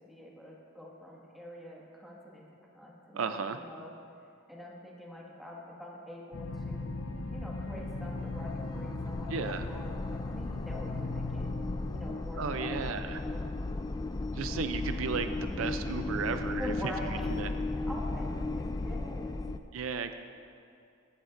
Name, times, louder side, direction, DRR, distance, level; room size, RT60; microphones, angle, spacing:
voice 1, 0.1-2.4 2.7-4.0 4.5-11.5 11.9-13.5 16.6-17.4 17.8-19.4, left 1 dB, ahead, -4 dB, 1.8 m, -45 dB
voice 2, 3.1-3.6 9.3-9.7 12.4-13.2 14.3-16.9 17.3-17.5 19.7-20.1, right 5 dB, 75° right, 9 dB, 0.5 m, -34 dB
sound 1, 6.3-12.1, left 2 dB, 80° left, 0.8 m, -37 dB
sound 2, 7.7-19.6, left 2 dB, 20° left, 0.3 m, -36 dB
15.5 x 12.5 x 2.6 m, 2.6 s
head